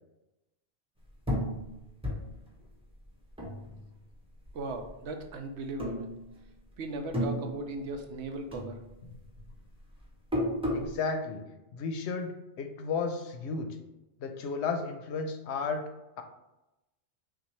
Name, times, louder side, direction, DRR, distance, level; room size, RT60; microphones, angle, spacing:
sound 1, 1.3-4.1 4.5-5.3 5.7-6.6 6.9-8.2 8.5-11.0, equal, 5° right, 0.9 m, -34 dB
voice 1, 4.5-6.1 6.8-8.8, right 2 dB, 90° right, 5 dB, 0.9 m, -37 dB
voice 2, 10.7-11.4 11.7-13.7 14.2-15.9, left 4 dB, 85° left, 6 dB, 0.9 m, -33 dB
5.7 x 2.3 x 3.2 m, 0.97 s
omnidirectional pair, 1.1 m